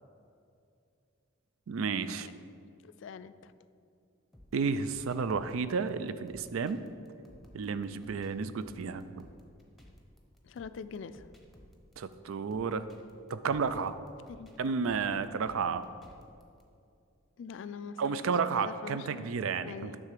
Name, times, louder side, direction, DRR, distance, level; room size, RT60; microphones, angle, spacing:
voice 1, 1.7-2.3 4.5-6.8 7.5-9.3 12.0-12.9 13.3-14.0 14.6-15.8 18.0-20.0, right 5 dB, 85° right, 12 dB, 0.4 m, -32 dB
voice 2, 2.8-3.5 10.4-11.3 14.3-14.5 17.4-18.2 18.6-19.2 19.6-20.0, left 6 dB, 65° left, 14 dB, 0.3 m, -43 dB
sound 1, 4.3-16.6, equal, ahead, 0.8 m, -57 dB
9.7 x 3.6 x 6.7 m, 2.4 s
head